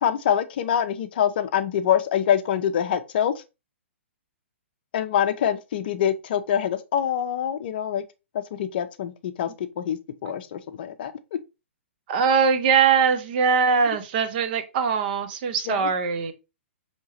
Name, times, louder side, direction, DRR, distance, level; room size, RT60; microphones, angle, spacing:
voice 1, 0.0-3.3 4.9-8.0 8.5-11.1 15.7-15.9, left 9 dB, 50° left, 0.5 m, -25 dB
voice 2, 12.1-16.3, right 6 dB, 45° right, 0.6 m, -21 dB
4.5 x 2.9 x 2.8 m
figure-of-eight pair, 120°, 7 cm